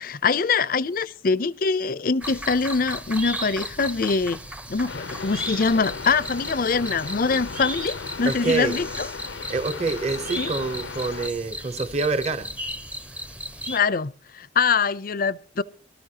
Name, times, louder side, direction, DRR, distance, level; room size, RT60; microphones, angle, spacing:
voice 1, 0.0-4.4 4.7-8.9 10.4-10.5 13.7-15.6, left 4 dB, 50° left, 0.5 m, -24 dB
sound 1, 2.2-13.8, equal, 5° right, 0.6 m, -35 dB
sound 2, 4.9-11.3, left 5 dB, 85° left, 0.7 m, -36 dB
voice 2, 8.3-8.8 9.5-12.5, right 3 dB, 35° right, 0.8 m, -26 dB
23.0 x 13.0 x 2.8 m
head